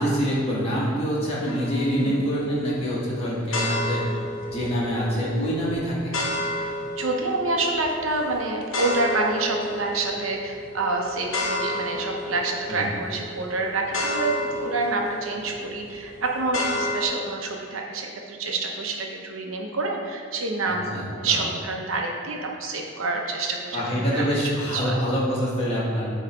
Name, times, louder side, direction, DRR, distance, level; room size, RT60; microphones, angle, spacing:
voice 1, 0.0-4.0 4.5-6.1 12.7-12.9 20.6-21.5 23.7-26.1, equal, 30° left, -7 dB, 1.5 m, -25 dB
sound 1, 1.5-17.0, left 1 dB, 70° left, 1.2 m, -32 dB
voice 2, 5.1-5.6 6.6-24.2 24.6-25.0, right 3 dB, 80° right, 1 dB, 0.9 m, -28 dB
8.9 x 3.2 x 4.4 m, 2.1 s
head